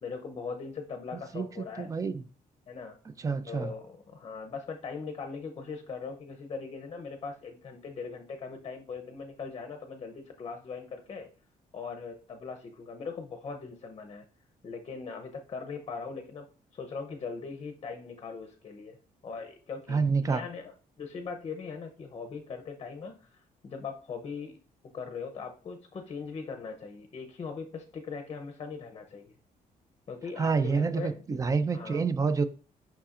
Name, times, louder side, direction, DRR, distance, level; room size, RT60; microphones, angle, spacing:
voice 1, 0.0-1.9 2.7-3.0 3.5-11.3 11.7-14.2 14.6-16.5 16.7-19.0 19.2-24.6 24.9-29.4 30.1-31.2 31.7-32.0, left 5 dB, 35° left, 0.7 m, -40 dB
voice 2, 1.3-2.2 3.2-3.7 19.9-20.4 30.4-32.4, right 4 dB, 20° right, 0.4 m, -28 dB
7.0 x 5.8 x 2.5 m
cardioid pair, 175°, 15 cm